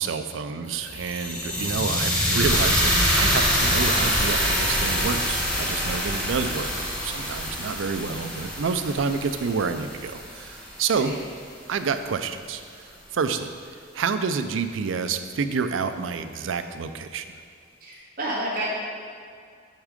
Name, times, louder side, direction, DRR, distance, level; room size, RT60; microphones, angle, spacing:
voice 1, 0.0-6.7 7.0-11.1 11.7-13.5 13.9-17.2, right 5 dB, 90° right, 9 dB, 0.4 m, -28 dB
sound 1, 0.7-10.8, equal, 5° left, 1.1 m, -25 dB
voice 2, 1.3-1.6 6.1-6.2 11.0-11.2 17.8-18.7, right 1 dB, 50° right, -7 dB, 1.5 m, -31 dB
8.2 x 3.7 x 5.1 m, 2.2 s
head